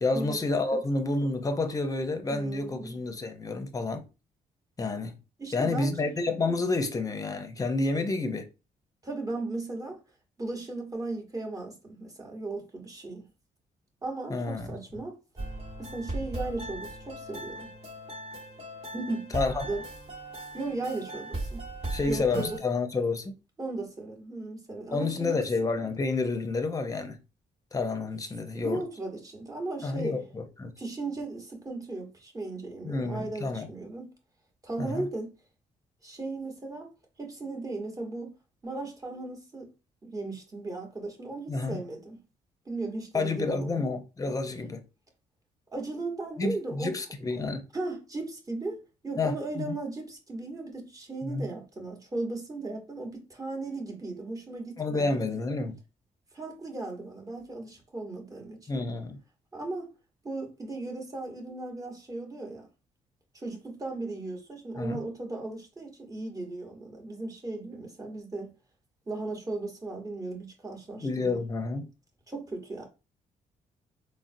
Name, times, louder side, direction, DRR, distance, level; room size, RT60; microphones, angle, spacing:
voice 1, 0.0-4.0 4.8-5.2 5.5-8.5 14.3-14.7 19.3-19.6 21.9-23.3 24.9-27.2 27.7-28.8 29.8-30.7 32.8-33.7 34.8-35.1 41.5-41.8 43.1-44.8 46.4-47.6 49.2-49.7 51.2-51.4 54.8-55.8 58.7-59.2 64.8-65.0 71.0-71.9, left 3 dB, 25° left, 0.6 m, -29 dB
voice 2, 2.3-3.0 5.4-6.2 9.0-10.0 10.4-13.3 14.0-15.2 15.8-17.7 18.9-19.3 19.6-19.8 20.5-21.7 22.1-22.6 23.6-25.4 28.5-30.2 30.8-34.1 34.6-35.3 36.0-36.9 37.2-38.3 38.6-39.7 40.0-42.2 42.6-43.8 45.7-46.9 47.7-55.2 56.3-58.9 59.5-59.9 60.2-62.7 63.3-68.5 69.1-71.4 72.3-72.9, right 2 dB, 25° right, 1.1 m, -36 dB
sound 1, 15.4-22.6, right 1 dB, 40° right, 1.1 m, -38 dB
3.7 x 2.1 x 2.6 m
cardioid pair, 75°, 15 cm